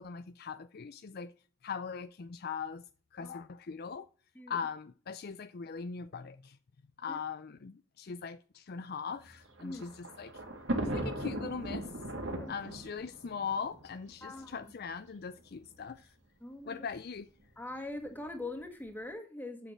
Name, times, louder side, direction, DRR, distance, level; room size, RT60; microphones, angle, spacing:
voice 1, 0.0-1.3 1.6-2.8 3.1-4.1 4.5-6.6 7.0-10.4 10.9-11.9 12.5-16.1 16.7-17.3, left 6 dB, 50° left, 0.5 m, -40 dB
Thunder, 9.2-14.6 15.4-15.5 15.7-15.8 16.9-17.2, right 1 dB, 65° right, 2.1 m, -38 dB
voice 2, 14.2-14.7 16.4-16.8 17.6-19.7, left 2 dB, 10° left, 1.8 m, -42 dB
8.0 x 6.8 x 7.3 m
head